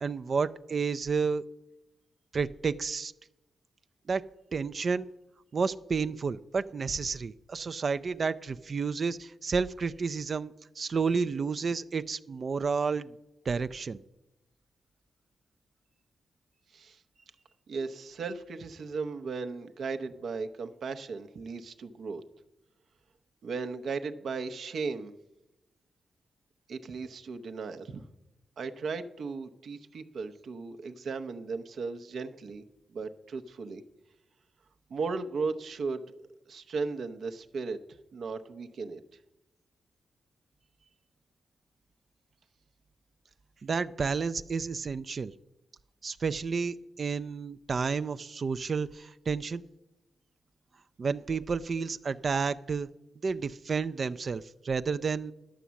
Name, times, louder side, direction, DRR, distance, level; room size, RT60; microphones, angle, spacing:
voice 1, 0.0-1.4 2.3-3.1 4.1-5.1 5.5-13.2 13.5-14.0 43.6-45.3 46.0-49.6 51.0-52.9 53.2-55.3, right 5 dB, 55° right, 13 dB, 0.4 m, -31 dB
voice 2, 17.7-22.2 23.4-25.1 26.7-28.0 28.6-32.6 32.9-33.8 34.9-36.0 36.5-37.8 38.1-39.0, right 4 dB, 75° right, 7 dB, 0.8 m, -36 dB
11.5 x 6.2 x 7.0 m, 0.95 s
cardioid pair, 65°, 0 cm